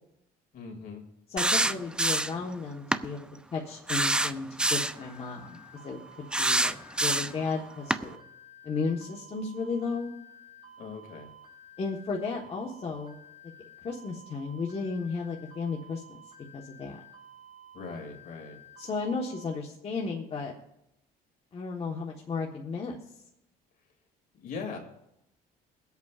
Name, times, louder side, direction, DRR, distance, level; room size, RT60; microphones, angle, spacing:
voice 1, 0.5-1.0 10.8-11.3 17.7-18.6 24.3-24.8, left 4 dB, 60° left, 3 dB, 2.6 m, -40 dB
voice 2, 1.3-5.6 5.8-8.2 8.6-10.1 11.8-13.2 13.8-16.2 16.5-17.0 18.8-20.5 21.5-23.0, left 4 dB, 35° left, -1 dB, 1.3 m, -34 dB
sound 1, 1.4-2.4 2.9-3.1 3.9-5.0 6.3-7.4 7.9-8.0, right 1 dB, 5° right, 0.4 m, -26 dB
sound 2, 4.9-19.6, equal, 40° right, 5.3 m, -52 dB
23.0 x 8.2 x 2.5 m, 0.83 s
cardioid pair, 110°, 17 cm